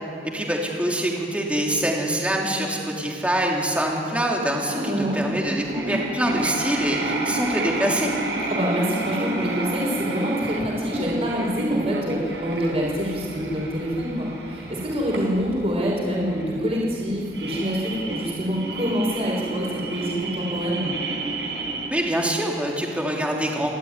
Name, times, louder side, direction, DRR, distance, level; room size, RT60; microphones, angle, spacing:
voice 1, 0.2-8.1 21.9-23.7, right 1 dB, 10° right, -1 dB, 3.0 m, -25 dB
voice 2, 4.7-5.2 8.5-20.9, equal, 35° right, -3 dB, 5.5 m, -26 dB
sound 1, 5.1-5.2 5.6-21.9, right 2 dB, 80° right, 4.8 m, -30 dB
28.5 x 13.0 x 9.7 m, 2.6 s
head